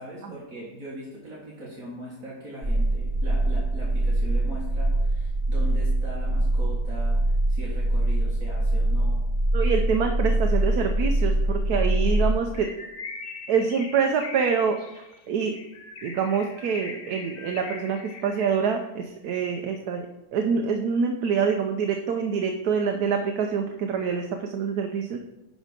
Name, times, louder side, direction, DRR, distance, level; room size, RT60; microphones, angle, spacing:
voice 1, 0.0-9.2, right 1 dB, 60° right, -6 dB, 2.2 m, -40 dB
sound 1, 2.6-12.3, right 1 dB, 40° right, 2.0 m, -23 dB
voice 2, 9.5-12.7 13.5-15.5 16.0-20.1 20.3-25.2, right 6 dB, 90° right, 4 dB, 1.2 m, -26 dB
Bird, 12.5-18.8, left 4 dB, 50° left, 0.8 m, -41 dB
11.5 x 4.1 x 5.1 m, 0.96 s
omnidirectional pair, 1.6 m